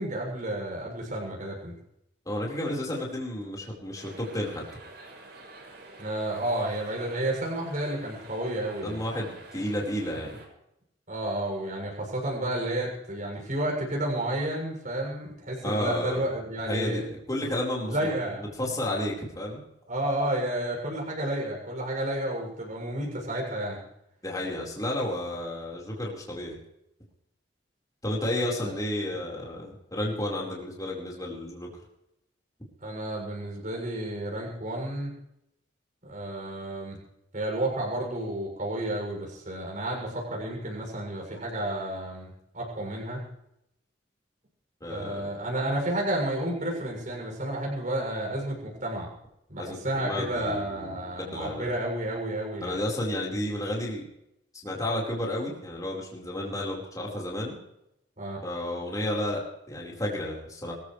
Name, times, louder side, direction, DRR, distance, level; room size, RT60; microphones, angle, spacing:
voice 1, 0.0-1.7 6.0-9.0 11.1-17.0 17.9-18.5 19.9-23.8 28.6-28.7 32.8-35.1 36.0-37.0 37.3-43.2 44.9-49.1 49.5-52.8 58.2-58.4, right 1 dB, 45° right, -1 dB, 7.1 m, -31 dB
voice 2, 2.2-4.6 8.8-10.4 15.6-16.2 16.7-18.1 18.4-19.6 24.2-26.6 28.0-31.7 44.8-45.3 49.6-51.7 52.6-54.1 54.6-57.6 58.4-59.4 59.7-60.7, left 1 dB, 20° left, -3 dB, 4.6 m, -32 dB
sound 1, 3.9-10.5, right 2 dB, 60° right, 7.0 m, -48 dB
25.0 x 15.0 x 3.3 m, 0.80 s
head